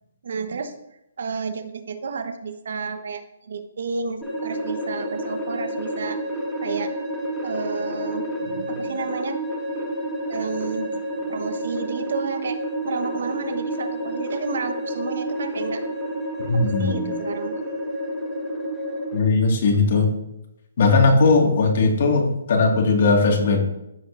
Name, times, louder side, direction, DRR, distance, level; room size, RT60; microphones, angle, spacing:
voice 1, 0.2-0.7 1.2-6.2 6.6-6.9 7.4-9.4 10.3-12.6 12.8-15.8 16.5-17.6, right 5 dB, 65° right, 8 dB, 1.1 m, -31 dB
sound 1, 4.2-19.2, right 1 dB, 5° left, 2.0 m, -29 dB
voice 2, 16.5-17.1 19.1-20.1 20.8-23.6, left 3 dB, 50° left, 1 dB, 1.9 m, -18 dB
14.0 x 5.1 x 2.6 m, 0.84 s
hypercardioid pair, 155°, 0 cm